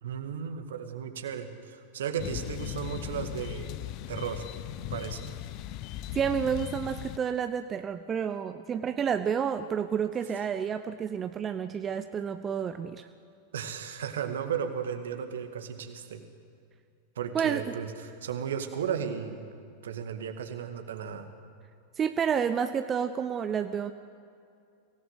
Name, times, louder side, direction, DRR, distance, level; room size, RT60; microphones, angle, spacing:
voice 1, 0.0-3.8 4.1-4.4 4.9-5.3 13.5-16.2 17.2-19.5 19.8-21.3, right 8 dB, 60° right, 7 dB, 2.0 m, -35 dB
sound 1, 2.2-7.2, left 13 dB, 40° left, 0.8 m, -38 dB
voice 2, 6.1-13.1 17.3-17.7 22.0-23.9, right 7 dB, 25° right, 10 dB, 0.7 m, -30 dB
24.0 x 17.5 x 8.1 m, 2.4 s
figure-of-eight pair, 90°, 0 cm